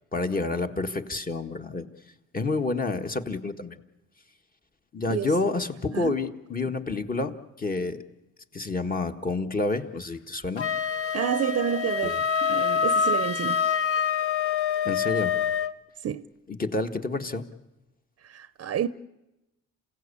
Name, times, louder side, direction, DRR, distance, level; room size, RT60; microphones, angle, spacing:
voice 1, 0.1-1.9 2.3-3.8 4.9-8.0 8.5-10.7 12.0-12.2 14.8-15.3 16.5-17.4, left 3 dB, 30° left, 1.7 m, -29 dB
Wind instrument woodwind instrument, 10.6-15.8, left 7 dB, 45° left, 1.0 m, -26 dB
voice 2, 11.1-13.6 16.0-16.3 18.2-18.9, right 9 dB, 50° right, 0.7 m, -29 dB
28.0 x 16.5 x 8.5 m
cardioid pair, 90°, 30 cm